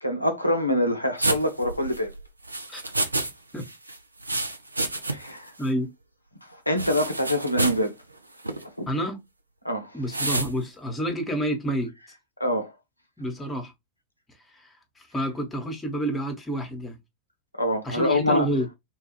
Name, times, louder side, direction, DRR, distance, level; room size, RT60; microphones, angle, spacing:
voice 1, 0.0-2.1 5.1-5.5 6.7-7.9 8.8-8.9 9.6-9.9 12.4-12.7 17.6-18.5, left 1 dB, 85° left, 0.4 m, -25 dB
sound 1, 1.2-3.3 3.6-5.4 5.6-5.7 6.8-7.9 8.4-8.6 10.1-10.5, right 2 dB, 85° right, 0.4 m, -29 dB
voice 2, 5.6-5.9 8.9-9.2 9.9-11.9 13.2-13.7 14.5-17.0 17.8-18.7, right 1 dB, 10° left, 0.9 m, -29 dB
2.9 x 2.3 x 2.8 m
figure-of-eight pair, 90°, 0 cm